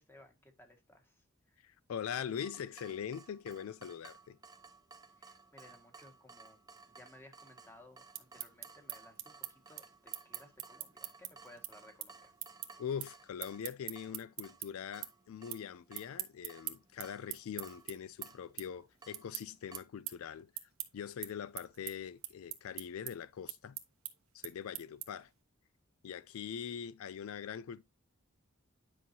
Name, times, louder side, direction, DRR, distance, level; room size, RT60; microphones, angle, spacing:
voice 1, 0.0-1.6 5.2-6.6 6.9-12.3, left 1 dB, 10° left, 1.7 m, -59 dB
voice 2, 1.6-4.4 12.8-20.5 20.9-23.8 24.3-25.3 26.0-27.8, left 8 dB, 80° left, 0.4 m, -42 dB
Water tap faucet / Drip, 2.4-19.8, right 4 dB, 20° right, 0.7 m, -58 dB
sound 1, 7.9-14.7 15.0-15.6 15.9-25.3, right 14 dB, 85° right, 1.0 m, -43 dB
9.9 x 5.5 x 2.7 m
head